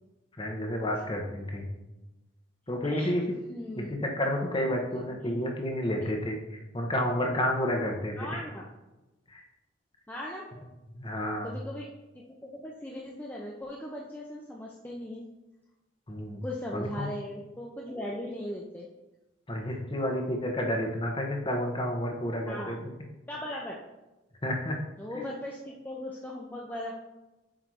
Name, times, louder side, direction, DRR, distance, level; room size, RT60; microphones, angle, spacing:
voice 1, 0.4-1.8 2.7-3.2 3.8-8.4 9.3-9.4 10.9-11.5 16.1-16.4 16.7-17.1 19.5-22.8 24.4-24.8 25.1-25.3, left 1 dB, 25° left, 2 dB, 0.9 m, -30 dB
voice 2, 2.8-3.2 3.5-3.9 5.2-5.3 8.1-8.7 10.1-10.5 11.4-11.9 12.1-15.2 16.4-18.9 22.5-22.8 23.3-23.8 25.0-26.9, left 1 dB, 10° left, -3 dB, 0.5 m, -38 dB
7.6 x 2.7 x 4.7 m, 1.0 s
head